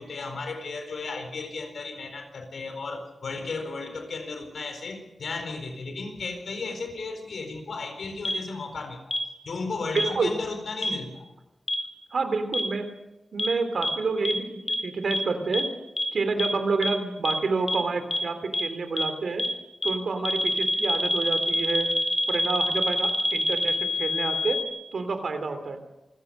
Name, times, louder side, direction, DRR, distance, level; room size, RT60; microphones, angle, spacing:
voice 1, 0.0-9.0 9.4-11.3, left 3 dB, 85° left, 7 dB, 4.4 m, -34 dB
sound 1, 8.3-8.4 9.1-9.2 10.0-10.1 10.8-10.9 11.7-11.8 12.5-12.6 13.4-13.5 13.8-13.9 14.3-14.4 14.7-14.8 15.1-15.2 15.5-15.6 16.0-16.1 16.4-16.5 16.8-16.9 17.3-17.4 17.7-17.8 18.1-18.2 18.5-18.6 19.0-19.1 19.4-19.5 19.8-19.9 20.3-24.6, left 1 dB, 35° left, 3.2 m, -25 dB
voice 2, 9.9-10.3 12.1-12.9 13.3-15.7 16.1-19.4 19.8-21.9 22.3-24.6 24.9-25.8, right 4 dB, 80° right, 8 dB, 3.3 m, -28 dB
27.0 x 16.5 x 6.6 m, 0.95 s
cardioid pair, 65°, 0 cm